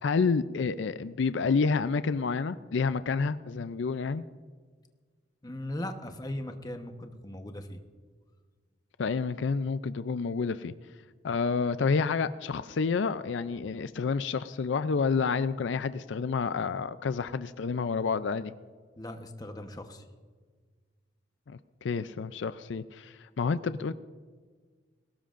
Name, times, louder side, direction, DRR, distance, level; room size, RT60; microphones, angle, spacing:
voice 1, 0.0-4.2 9.0-10.7 11.2-18.5 21.5-23.9, left 5 dB, 75° left, 13 dB, 0.4 m, -29 dB
voice 2, 5.4-7.8 19.0-20.0, left 1 dB, 20° left, 6 dB, 1.0 m, -38 dB
21.0 x 18.0 x 2.5 m, 1.5 s
head